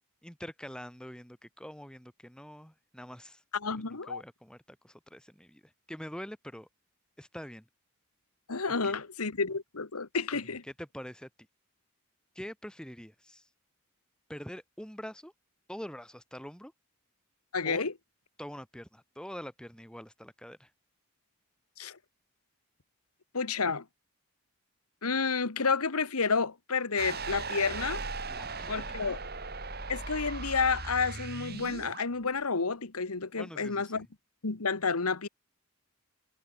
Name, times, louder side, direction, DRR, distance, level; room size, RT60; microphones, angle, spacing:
voice 1, 0.2-3.4 3.9-6.7 7.2-7.7 8.7-8.9 10.3-10.5 10.8-11.3 12.3-13.5 14.3-15.3 15.7-16.7 17.6-17.8 18.4-20.7 28.3-29.1 33.4-34.1, equal, 5° left, 3.2 m, -45 dB
voice 2, 3.5-4.2 8.5-10.6 17.5-17.9 21.8-22.0 23.3-23.8 25.0-28.0 28.7-29.2 29.9-34.1 34.4-35.3, left 4 dB, 90° left, 1.5 m, -30 dB
sound 1, 27.0-32.1, right 4 dB, 45° right, 5.4 m, -38 dB
head